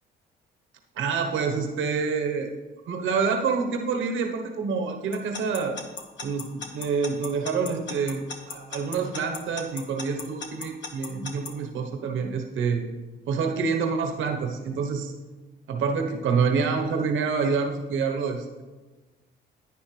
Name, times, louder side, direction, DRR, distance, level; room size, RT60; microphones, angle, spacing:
voice 1, 1.0-2.5 2.9-5.8 6.2-12.8 13.3-15.1 15.7-18.6, right 5 dB, 80° right, 3 dB, 1.0 m, -27 dB
Alarm / Clock, 5.1-11.5, left 5 dB, 65° left, 1.4 m, -36 dB
10.5 x 9.5 x 3.2 m, 1.3 s
cardioid pair, 90°, 20 cm